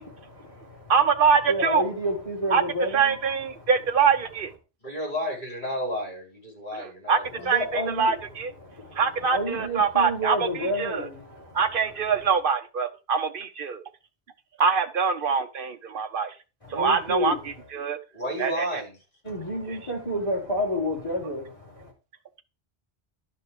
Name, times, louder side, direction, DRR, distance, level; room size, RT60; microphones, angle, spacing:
voice 1, 0.0-3.7 4.0-4.5 7.2-12.4 16.6-17.7 19.2-21.9, equal, 30° left, 4.6 m, -31 dB
voice 2, 0.9-1.8 2.5-2.6 2.9-4.5 6.7-7.2 7.4-7.6 8.0-8.5 9.0-10.4 11.5-13.8 14.6-16.3 16.7-17.3 17.7-18.0 18.4-18.6, right 6 dB, 60° right, 1.1 m, -23 dB
voice 3, 4.8-7.5 18.1-19.0, equal, 50° left, 4.8 m, -32 dB
11.5 x 5.5 x 4.9 m
omnidirectional pair, 1.0 m